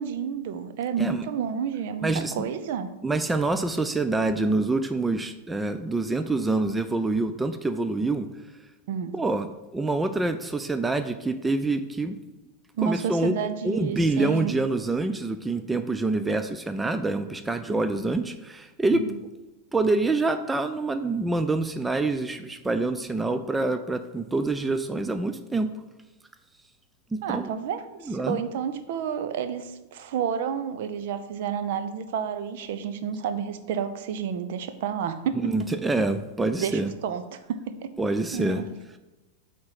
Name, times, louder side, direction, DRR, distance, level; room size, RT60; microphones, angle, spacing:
voice 1, 0.0-2.1 2.4-2.9 8.9-9.1 12.8-14.5 18.9-19.2 27.2-35.4 36.6-37.9 38.3-38.6, right 7 dB, 55° right, 10 dB, 0.6 m, -30 dB
voice 2, 2.0-2.3 3.0-8.3 9.1-9.5 9.7-12.1 12.8-19.0 19.7-25.7 27.1-27.5 28.1-28.4 35.4-36.9 38.0-38.6, right 2 dB, 10° right, 9 dB, 0.4 m, -26 dB
8.7 x 3.6 x 5.8 m, 1.1 s
figure-of-eight pair, 90°, 0 cm